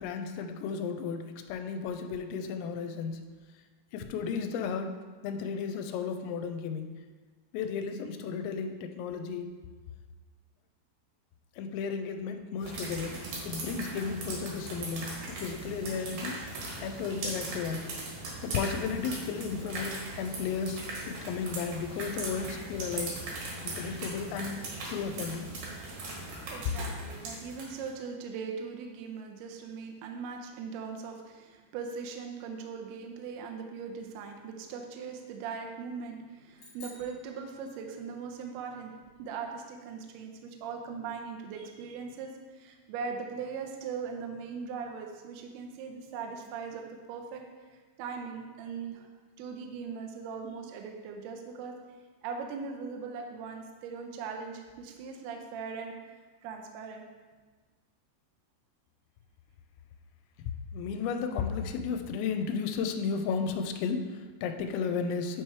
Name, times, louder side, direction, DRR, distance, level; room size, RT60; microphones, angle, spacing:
voice 1, 0.0-3.2 3.9-4.9 5.2-6.9 7.5-9.5 11.6-13.2 13.4-16.4 16.8-17.9 18.4-23.1 23.6-24.6 24.9-25.5 60.7-65.4, left 6 dB, 85° left, 6 dB, 2.8 m, -34 dB
sound 1, 12.6-27.9, right 2 dB, 65° right, 2.4 m, -39 dB
voice 2, 26.1-47.4 47.7-49.1 49.4-51.7 52.2-56.0 56.4-57.0, right 5 dB, 80° right, 2 dB, 2.3 m, -40 dB
sound 2, 36.6-38.2, left 2 dB, 60° left, 1.0 m, -53 dB
8.8 x 3.1 x 4.6 m, 1.4 s
omnidirectional pair, 5.2 m